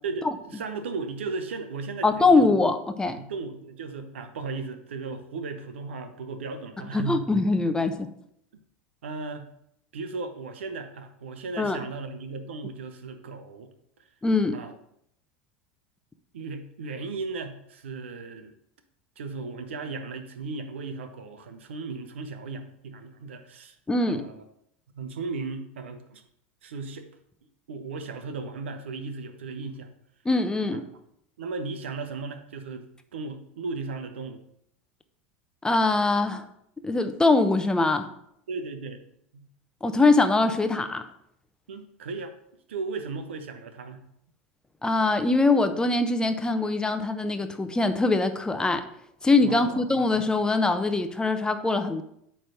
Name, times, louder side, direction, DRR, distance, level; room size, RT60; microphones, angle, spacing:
voice 1, 0.0-2.7 3.2-7.3 9.0-9.5 9.9-13.7 14.5-14.7 16.3-18.5 19.2-23.8 24.1-24.4 24.9-26.2 26.6-27.1 27.7-29.9 30.7-30.8 31.4-32.9 33.1-34.4 38.5-39.0 39.3-39.5 41.7-42.4 42.7-44.0 49.4-49.8, right 4 dB, 80° right, 9 dB, 0.9 m, -36 dB
voice 2, 2.0-3.2 6.9-8.1 11.6-11.8 14.2-14.6 23.9-24.2 30.2-30.8 35.6-36.5 36.8-38.1 39.8-41.0 44.8-48.8 49.2-52.0, left 3 dB, 10° left, 8 dB, 0.8 m, -23 dB
8.7 x 3.4 x 6.4 m, 0.73 s
hypercardioid pair, 90°, 6 cm